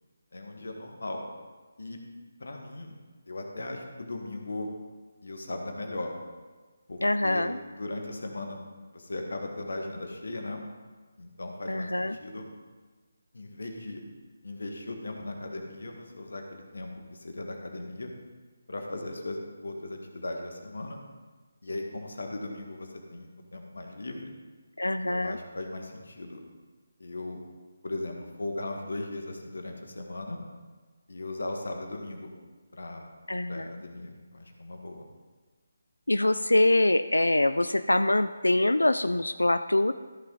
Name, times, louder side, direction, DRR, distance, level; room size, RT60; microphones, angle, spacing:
voice 1, 0.3-1.2 1.8-2.0 2.4-3.0 3.3-4.7 5.2-6.1 6.9-7.5 7.8-8.6 8.9-10.6 11.2-12.5 13.3-14.0 14.4-18.1 18.7-21.0 21.6-24.3 25.0-26.4 27.0-27.4 27.8-30.4 31.1-32.3 32.7-33.0 33.5-35.0, left 2 dB, 70° left, 3 dB, 1.6 m, -37 dB
voice 2, 7.0-7.6 11.7-12.1 24.8-25.4 33.3-33.8 36.1-39.9, left 1 dB, 85° left, 11 dB, 0.3 m, -24 dB
14.0 x 5.9 x 3.9 m, 1.4 s
figure-of-eight pair, 150°, 0 cm